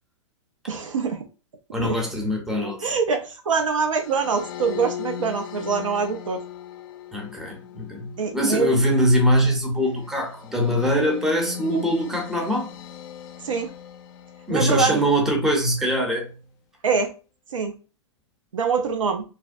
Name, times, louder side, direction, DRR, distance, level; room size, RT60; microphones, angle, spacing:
voice 1, 0.7-1.2 1.8-2.0 2.5-6.4 8.2-8.8 13.4-13.7 14.5-15.0 16.8-17.1 17.5-17.7 18.5-19.2, right 5 dB, 90° right, 0.5 m, -24 dB
voice 2, 1.7-2.9 7.1-12.7 14.5-16.3, equal, 5° right, 0.6 m, -23 dB
sound 1, 3.9-15.2, left 9 dB, 45° left, 0.4 m, -39 dB
2.6 x 2.0 x 2.4 m
hypercardioid pair, 115°, 16 cm